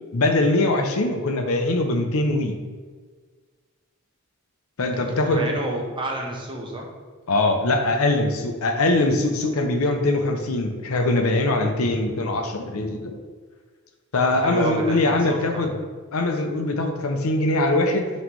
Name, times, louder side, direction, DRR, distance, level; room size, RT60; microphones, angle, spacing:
voice 1, 0.1-2.6 4.8-5.5 7.3-13.2 14.1-15.7 16.1-18.1, left 2 dB, 90° left, 5 dB, 0.8 m, -22 dB
voice 2, 5.0-6.9 14.3-15.7, right 2 dB, 25° right, -1 dB, 1.1 m, -30 dB
6.0 x 3.2 x 5.3 m, 1.5 s
head